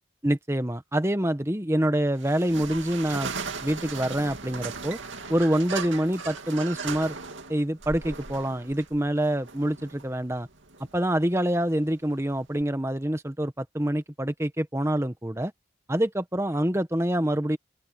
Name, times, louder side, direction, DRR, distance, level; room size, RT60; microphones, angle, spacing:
voice 1, 0.2-3.3 3.6-5.0 5.3-7.2 7.5-10.5 10.9-15.5 15.9-17.6, right 1 dB, 15° right, 1.1 m, -26 dB
sound 1, 2.2-12.6, right 5 dB, 80° right, 2.5 m, -38 dB
open air
head